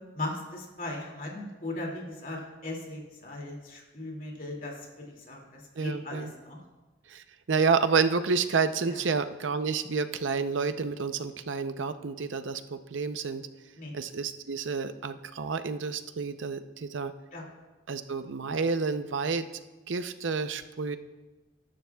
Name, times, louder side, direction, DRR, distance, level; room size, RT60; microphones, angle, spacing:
voice 1, 0.1-6.6 8.9-9.0 13.8-13.9 17.3-17.5, left 2 dB, 45° left, 0 dB, 2.4 m, -38 dB
voice 2, 5.8-6.3 7.1-13.4 13.9-17.1 17.9-19.5 19.9-21.0, right 5 dB, 85° right, 10 dB, 0.6 m, -29 dB
20.0 x 11.5 x 2.3 m, 1.1 s
head